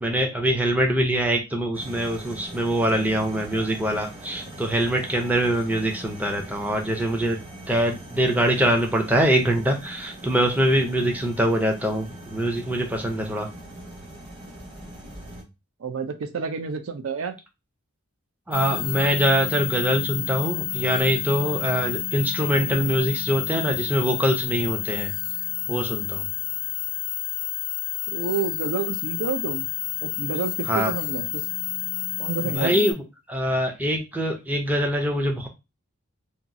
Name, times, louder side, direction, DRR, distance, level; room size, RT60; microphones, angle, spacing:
voice 1, 0.0-7.4 7.7-13.5 18.5-25.1 25.7-26.3 30.7-30.9 32.4-33.0 33.3-35.5, right 1 dB, 10° right, 2 dB, 0.5 m, -23 dB
sound 1, 1.7-15.4, right 1 dB, 25° right, 1.0 m, -41 dB
voice 2, 15.8-17.4 28.1-29.7 30.0-31.4 32.2-32.9, right 6 dB, 75° right, 7 dB, 0.4 m, -29 dB
sound 2, 18.5-32.9, left 11 dB, 70° left, 0.5 m, -30 dB
2.8 x 2.4 x 2.6 m, 0.25 s
head